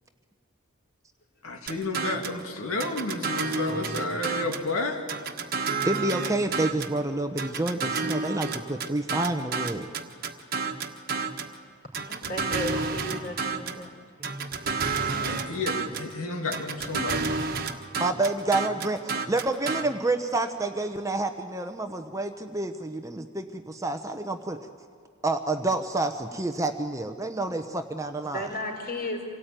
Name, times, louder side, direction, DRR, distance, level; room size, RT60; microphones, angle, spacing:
voice 1, 1.4-5.1 12.5-12.9 15.1-17.4, left 2 dB, 75° left, 3 dB, 2.4 m, -31 dB
sound 1, 1.7-2.4 2.8-4.7 5.1-7.0 7.4-11.5 11.9-13.8 14.2-16.1 16.5-19.8, right 4 dB, 40° right, 1.4 m, -30 dB
voice 2, 5.8-9.9 14.2-14.5 15.1-15.2 18.0-24.6 25.2-28.5, right 2 dB, 15° right, 6 dB, 0.9 m, -29 dB
voice 3, 12.1-13.9 28.3-29.3, left 1 dB, 40° left, 3 dB, 4.8 m, -34 dB
27.0 x 18.0 x 9.1 m, 2.3 s
head